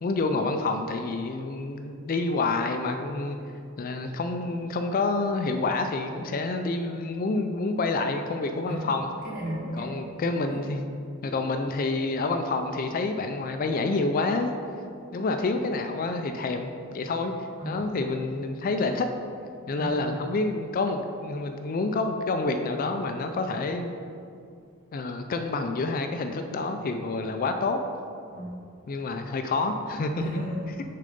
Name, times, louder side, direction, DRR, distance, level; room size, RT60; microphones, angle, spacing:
voice 1, 0.0-3.4 3.8-9.1 9.8-10.9 11.2-14.5 15.1-17.3 17.6-19.1 19.7-23.9 24.9-27.8 28.9-30.4, left 3 dB, 40° left, 6 dB, 0.3 m, -28 dB
voice 2, 8.6-9.9 11.2-11.3 17.6-17.9 19.7-20.0 28.3-28.6 30.2-30.8, equal, 40° right, -4 dB, 1.6 m, -34 dB
6.6 x 3.8 x 5.3 m, 2.4 s
head